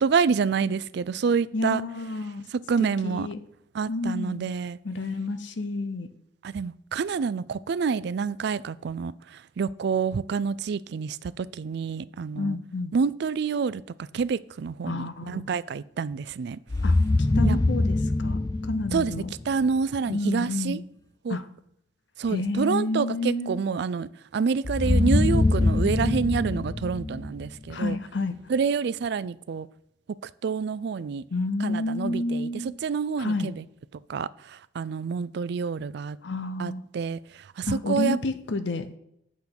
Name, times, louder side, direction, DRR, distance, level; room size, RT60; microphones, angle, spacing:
voice 1, 0.0-1.8 2.7-3.3 3.7-4.8 6.4-9.1 9.6-12.6 12.9-13.8 14.1-16.6 17.4-17.6 18.9-19.1 19.5-20.8 21.2-21.4 22.2-28.0 28.5-29.7 30.4-31.2 31.6-32.5 32.8-33.6 34.1-34.3 34.7-36.2 36.6-37.2 37.6-38.2, right 5 dB, 65° right, 0.4 m, -27 dB
voice 2, 1.5-2.4 2.8-3.4 3.9-4.5 4.8-6.1 12.4-12.9 14.8-15.5 16.8-17.0 17.4-19.3 20.1-20.8 21.3-21.5 22.3-23.6 27.7-28.4 31.3-32.7 33.2-33.5 36.2-36.8 37.7-39.0, left 2 dB, 80° left, 0.8 m, -30 dB
sound 1, 16.7-19.7 24.6-27.9, left 2 dB, 20° left, 0.3 m, -24 dB
8.2 x 6.4 x 5.2 m
head